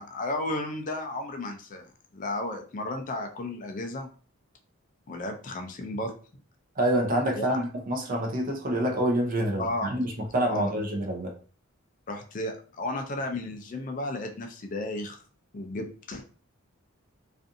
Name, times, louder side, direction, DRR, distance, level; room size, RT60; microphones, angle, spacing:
voice 1, 0.0-1.9 2.1-4.1 5.1-6.1 7.4-7.6 9.6-9.9 10.5-10.7 12.1-15.2 15.5-16.2, left 1 dB, 40° left, 4 dB, 0.4 m, -33 dB
voice 2, 6.8-11.3, right 1 dB, 40° right, 2 dB, 0.6 m, -27 dB
2.5 x 2.5 x 2.5 m, 0.40 s
head